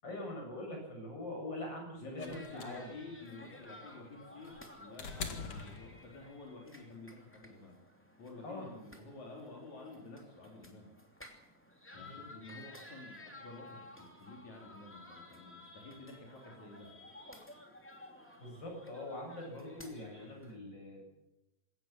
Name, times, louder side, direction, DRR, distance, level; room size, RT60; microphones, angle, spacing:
voice 1, 0.0-3.0 8.4-8.7 11.9-12.2 18.4-21.0, left 1 dB, 35° left, 1 dB, 7.9 m, -43 dB
voice 2, 2.0-7.8 8.2-10.9 11.9-16.9, left 2 dB, 75° left, -1 dB, 5.1 m, -50 dB
sound 1, 2.2-6.5 7.7-7.8, left 5 dB, 55° left, 2.7 m, -45 dB
sound 2, 2.2-20.6, left 1 dB, 5° left, 2.5 m, -55 dB
21.5 x 17.5 x 7.6 m, 0.93 s
omnidirectional pair, 3.3 m